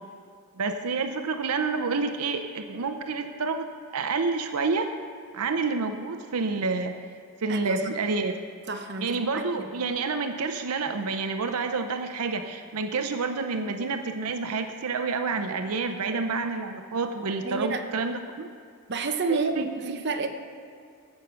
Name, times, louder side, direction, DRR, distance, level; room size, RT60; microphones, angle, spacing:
voice 1, 0.6-4.9 5.3-7.0 7.4-8.3 9.0-18.5 19.3-20.0, right 4 dB, 85° right, 7 dB, 0.6 m, -29 dB
voice 2, 7.5-7.9 8.7-9.7 17.4-17.8 18.9-20.3, right 4 dB, 50° right, 5 dB, 0.8 m, -30 dB
16.0 x 6.6 x 5.6 m, 2.4 s
head